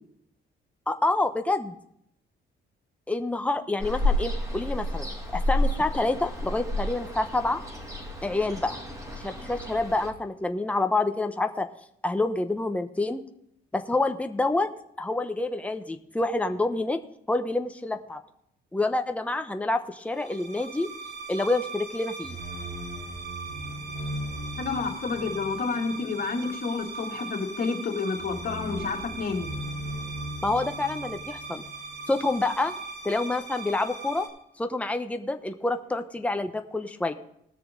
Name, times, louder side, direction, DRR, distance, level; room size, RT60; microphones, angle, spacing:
voice 1, 0.9-1.7 3.1-7.6 8.2-8.8 9.2-11.7 12.0-13.2 13.7-14.7 15.0-17.0 17.3-18.2 18.7-20.9 21.3-22.4 30.4-31.6 32.1-32.7 33.0-34.3 34.6-37.1, left 2 dB, 5° left, 6 dB, 0.9 m, -27 dB
Ocean, 3.8-10.1, left 1 dB, 15° right, 2.7 m, -30 dB
sound 1, 20.1-34.3, right 2 dB, 55° right, 3.9 m, -37 dB
voice 2, 24.6-29.5, left 4 dB, 50° left, 1 dB, 2.4 m, -30 dB
20.0 x 6.7 x 3.8 m, 0.73 s
cardioid pair, 90°, 20 cm